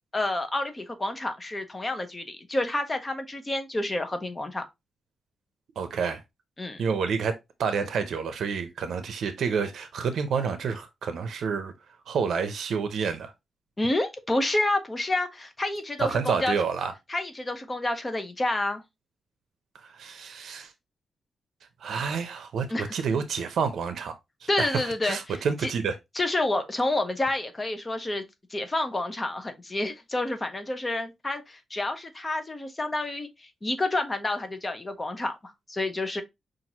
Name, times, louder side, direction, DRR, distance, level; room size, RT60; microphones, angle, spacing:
voice 1, 0.1-4.6 6.6-6.8 13.8-16.5 17.1-18.8 22.7-22.9 24.5-25.7 26.1-28.2 28.5-36.2, left 2 dB, 20° left, 0.8 m, -29 dB
voice 2, 5.8-6.2 6.8-11.7 12.1-13.3 16.0-16.9 19.9-20.7 21.8-26.0, right 6 dB, 80° right, 0.6 m, -29 dB
5.8 x 2.5 x 2.9 m
wide cardioid pair, 125°, 0 cm